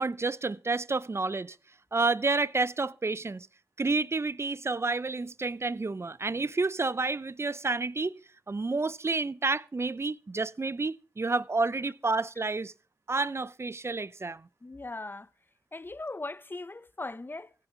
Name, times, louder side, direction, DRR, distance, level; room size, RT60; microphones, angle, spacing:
voice 1, 0.0-1.6 1.9-3.5 3.8-8.1 8.5-12.7 13.1-14.5, right 3 dB, 35° right, 0.6 m, -30 dB
voice 2, 14.6-15.3 15.7-17.5, left 2 dB, 25° left, 0.7 m, -39 dB
15.5 x 6.8 x 5.9 m
supercardioid pair, 40°, 8 cm